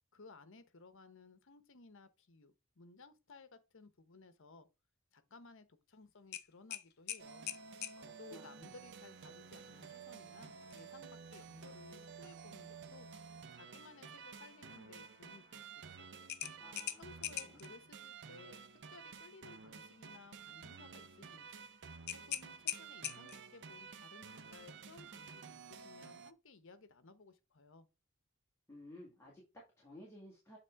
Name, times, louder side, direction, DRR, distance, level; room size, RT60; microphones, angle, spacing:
voice 1, 0.1-4.7 5.1-7.5 8.2-13.1 13.5-16.2 17.0-18.6 18.9-21.7 22.1-27.9, left 3 dB, 65° left, 1.0 m, -59 dB
sound 1, 6.3-8.0 10.6-10.8 11.3-11.4 16.3-17.7 22.1-23.5, left 11 dB, 50° left, 0.6 m, -42 dB
sound 2, 7.2-26.3, right 5 dB, 55° right, 0.6 m, -52 dB
voice 2, 8.0-8.8 16.6-17.1 17.4-17.6 28.7-30.6, left 1 dB, 15° left, 2.0 m, -56 dB
Trumpet, 9.6-17.0, left 2 dB, 30° left, 3.9 m, -72 dB
8.3 x 3.8 x 3.5 m
head